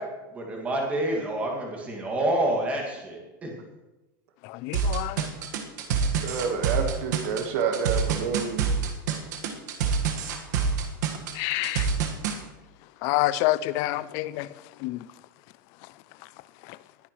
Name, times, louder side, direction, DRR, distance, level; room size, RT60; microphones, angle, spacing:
voice 1, 0.3-3.5, right 1 dB, 15° right, 2.1 m, -28 dB
voice 2, 4.4-5.2 11.3-11.9 13.0-14.5 14.8-15.0, left 16 dB, 30° left, 0.3 m, -27 dB
sound 1, 4.7-12.4, right 6 dB, 65° right, 1.6 m, -26 dB
voice 3, 6.2-8.7, right 6 dB, 45° right, 1.5 m, -28 dB
20.0 x 9.5 x 3.2 m
supercardioid pair, 175°, 10 cm